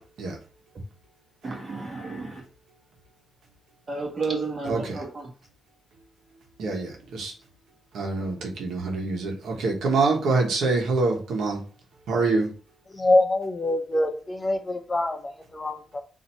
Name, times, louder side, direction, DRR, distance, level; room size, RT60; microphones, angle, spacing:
voice 1, 1.4-2.4 3.9-5.0, right 4 dB, 40° right, 1.7 m, -31 dB
voice 2, 4.6-5.0 6.6-7.3 7.9-11.6 12.1-12.5, right 3 dB, 90° right, 1.2 m, -25 dB
voice 3, 12.9-16.0, left 2 dB, 25° left, 0.7 m, -25 dB
4.1 x 2.8 x 4.3 m
cardioid pair, 100°, 0 cm